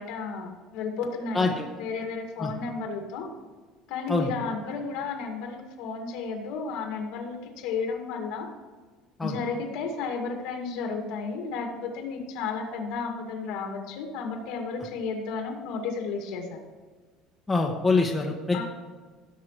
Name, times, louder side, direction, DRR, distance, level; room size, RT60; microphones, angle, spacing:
voice 1, 0.0-3.3 3.9-8.5 9.2-16.6 18.5-18.6, left 4 dB, 60° left, 2 dB, 2.2 m, -33 dB
voice 2, 1.3-1.7 2.4-2.5 4.1-4.3 9.2-9.4 17.5-18.6, left 3 dB, 5° left, 0 dB, 0.8 m, -25 dB
17.0 x 7.6 x 3.2 m, 1.4 s
cardioid pair, 170°, 0 cm